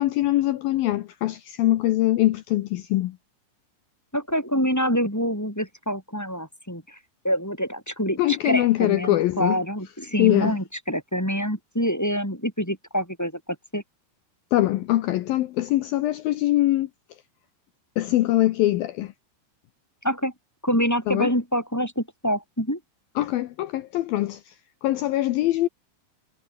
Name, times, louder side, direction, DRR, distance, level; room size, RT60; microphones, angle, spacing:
voice 1, 0.0-3.2 8.2-9.6 10.2-10.6 14.5-16.9 18.0-19.1 21.1-21.3 23.2-24.5 24.8-25.7, left 15 dB, 80° left, 2.1 m, -23 dB
voice 2, 4.1-7.0 7.2-13.3 13.7-13.8 20.0-20.3 20.6-22.8, equal, 5° left, 5.5 m, -26 dB
omnidirectional pair, 5.2 m